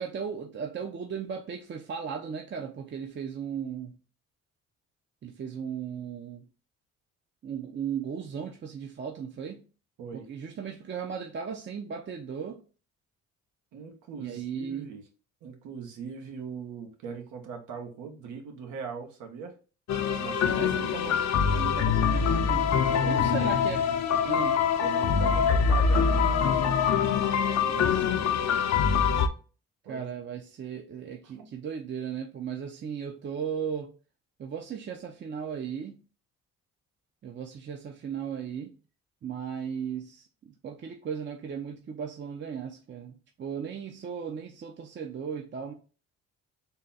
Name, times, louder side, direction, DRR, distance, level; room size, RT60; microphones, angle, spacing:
voice 1, 0.0-4.0 5.2-6.5 7.4-9.6 10.1-12.6 14.2-14.9 20.5-21.2 21.5-22.8 23.0-23.9 24.2-24.6 27.6-28.4 29.9-33.9 34.4-36.0 37.2-38.8 39.2-45.7, right 7 dB, 40° right, 0.5 m, -36 dB
voice 2, 13.7-15.0 15.4-19.5 20.1-21.1 23.0-23.3 24.8-26.8 29.8-30.1 31.3-31.5, right 6 dB, 85° right, 1.1 m, -41 dB
sound 1, 19.9-29.3, left 6 dB, 60° left, 0.6 m, -24 dB
3.8 x 2.2 x 3.9 m
cardioid pair, 90°, 30 cm